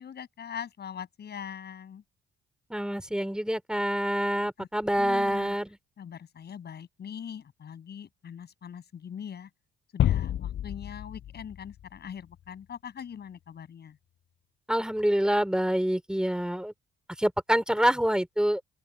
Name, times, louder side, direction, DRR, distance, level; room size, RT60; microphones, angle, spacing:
voice 1, 0.0-2.0 4.6-4.7 5.0-5.6 6.0-9.5 9.9-14.0, left 8 dB, 55° left, 8.0 m, -42 dB
voice 2, 2.7-5.7 14.7-16.7 17.2-18.6, equal, 5° right, 3.6 m, -26 dB
sound 1, 10.0-12.5, left 11 dB, 70° left, 6.3 m, -29 dB
open air
cardioid pair, 90°, 20 cm